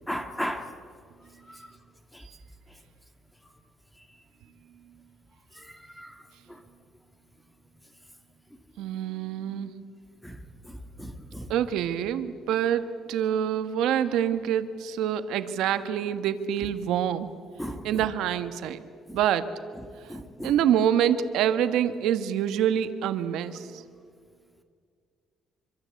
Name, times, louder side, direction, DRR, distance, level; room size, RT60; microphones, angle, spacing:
voice 1, 0.1-0.7 6.0-6.1 10.2-10.3 10.7-11.5 17.6-17.8 19.1-19.2 20.1-20.5, equal, 5° left, 7 dB, 2.0 m, -34 dB
voice 2, 8.8-9.7 11.5-17.3 17.8-18.8 19.1-19.4 20.4-23.8, right 10 dB, 85° right, 10 dB, 1.5 m, -26 dB
26.0 x 25.0 x 8.4 m, 2.1 s
cardioid pair, 165°, 0 cm